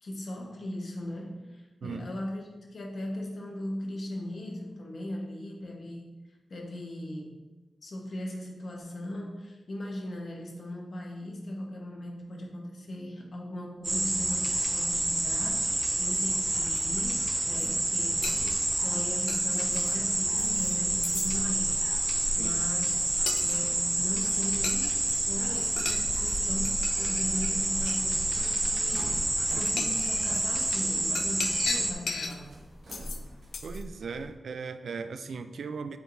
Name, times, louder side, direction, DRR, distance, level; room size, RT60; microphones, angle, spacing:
voice 1, 0.0-6.1 6.5-7.4 7.8-18.3 18.8-21.8 22.3-23.0 23.4-25.0 25.3-32.5, left 1 dB, 50° left, -1 dB, 1.1 m, -38 dB
voice 2, 1.8-2.1 18.3-18.7 22.4-22.7 33.6-36.0, right 5 dB, 80° right, 9 dB, 0.3 m, -38 dB
sound 1, 13.8-31.9, right 1 dB, 20° right, 0.5 m, -28 dB
sound 2, 16.8-16.9 17.4-17.7 18.2-19.9 20.4-20.8 21.0-21.3 23.3-23.6 24.6-25.2 25.5-26.4 26.7-28.1 29.0-29.1 29.7-30.4 31.2-32.4 32.9-33.2 33.5-33.8, left 4 dB, 65° left, 0.4 m, -38 dB
sound 3, 20.5-34.3, equal, 60° right, 1.1 m, -44 dB
7.6 x 4.8 x 2.6 m, 1.1 s
wide cardioid pair, 165°, 0 cm